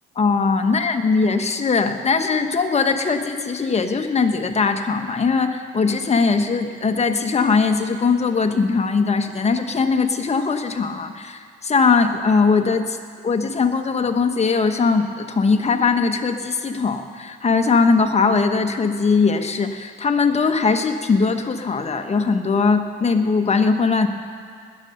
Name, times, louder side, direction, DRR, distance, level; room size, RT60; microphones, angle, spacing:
voice 1, 0.2-13.0 13.2-24.1, left 4 dB, 35° left, 6 dB, 1.1 m, -20 dB
20.0 x 6.8 x 6.5 m, 2.1 s
cardioid pair, 90°, 20 cm